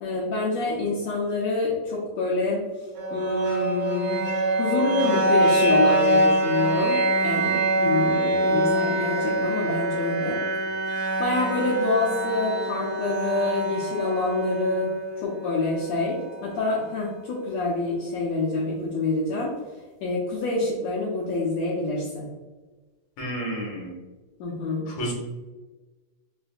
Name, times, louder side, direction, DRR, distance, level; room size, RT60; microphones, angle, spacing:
voice 1, 0.0-2.6 3.1-4.2 4.5-10.4 11.2-19.6 20.0-22.3 24.4-24.9, left 3 dB, 80° left, -5 dB, 1.5 m, -27 dB
sound 1, 3.0-16.9, right 1 dB, 70° right, 1.8 m, -25 dB
voice 2, 23.2-23.9 25.0-25.1, right 1 dB, 65° left, -3 dB, 2.1 m, -30 dB
5.9 x 2.5 x 2.4 m, 1.2 s
omnidirectional pair, 3.8 m